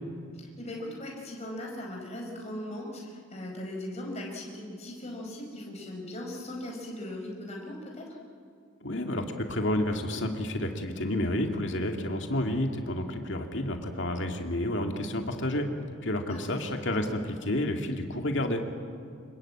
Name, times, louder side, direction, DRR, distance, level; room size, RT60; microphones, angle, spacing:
voice 1, 0.3-8.2 16.3-16.8, left 1 dB, 30° left, 0 dB, 4.9 m, -39 dB
voice 2, 8.8-15.7 16.0-18.6, left 1 dB, 55° left, 4 dB, 2.4 m, -30 dB
26.5 x 22.5 x 8.7 m, 2.3 s
head